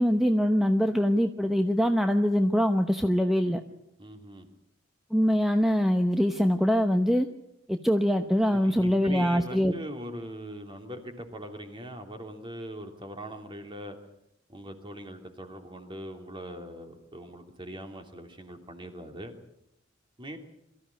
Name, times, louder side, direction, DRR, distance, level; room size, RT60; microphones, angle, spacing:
voice 1, 0.0-3.6 5.1-7.3 7.7-9.7, equal, ahead, 6 dB, 0.9 m, -23 dB
voice 2, 4.0-4.5 8.5-13.9 14.5-19.3 20.2-20.4, right 1 dB, 25° right, 5 dB, 3.0 m, -41 dB
23.5 x 14.5 x 9.9 m, 0.82 s
head